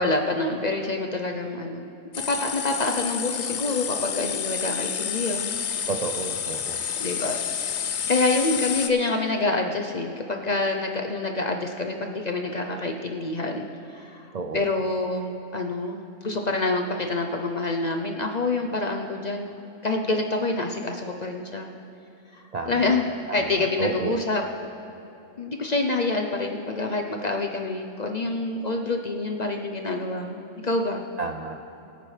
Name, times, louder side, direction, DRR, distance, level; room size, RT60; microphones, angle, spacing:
voice 1, 0.0-2.0 2.3-5.5 7.0-7.4 8.1-19.6 19.8-21.7 22.3-23.0 23.3-24.4 25.4-31.0, left 2 dB, 40° left, 3 dB, 0.6 m, -27 dB
sound 1, 2.1-8.9, left 8 dB, 65° left, 1.0 m, -29 dB
voice 2, 5.9-6.8 14.3-14.7 22.5-24.2 31.2-31.6, right 4 dB, 50° right, 4 dB, 0.5 m, -32 dB
22.0 x 9.2 x 3.3 m, 2.8 s
omnidirectional pair, 1.3 m